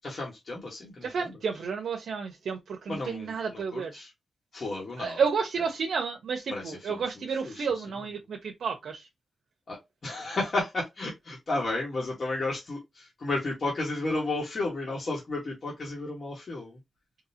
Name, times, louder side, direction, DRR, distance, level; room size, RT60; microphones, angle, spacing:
voice 1, 0.0-1.3 2.9-4.1 4.5-5.2 6.5-7.0 7.4-7.6 9.7-9.8 10.0-16.8, left 2 dB, 55° left, 1.7 m, -33 dB
voice 2, 1.0-4.0 5.0-9.1, right 5 dB, 85° right, 0.6 m, -31 dB
3.8 x 2.7 x 2.8 m
cardioid pair, 75°, 0 cm